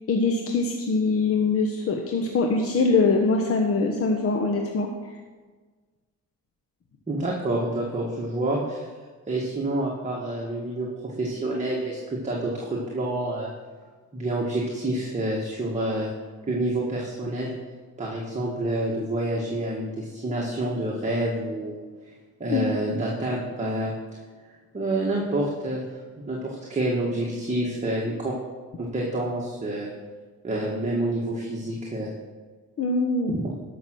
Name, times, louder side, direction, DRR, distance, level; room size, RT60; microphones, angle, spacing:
voice 1, 0.1-4.9 22.5-22.7 32.8-33.4, left 3 dB, 50° left, 2 dB, 1.2 m, -23 dB
voice 2, 7.1-8.9 9.3-13.5 14.1-16.1 16.5-17.5 18.0-22.1 22.4-23.9 24.5-25.8 26.3-28.4 28.8-29.9 30.4-32.1 33.3-33.5, right 1 dB, 25° right, -3 dB, 2.0 m, -28 dB
13.0 x 6.2 x 6.3 m, 1.4 s
cardioid pair, 90°, 30 cm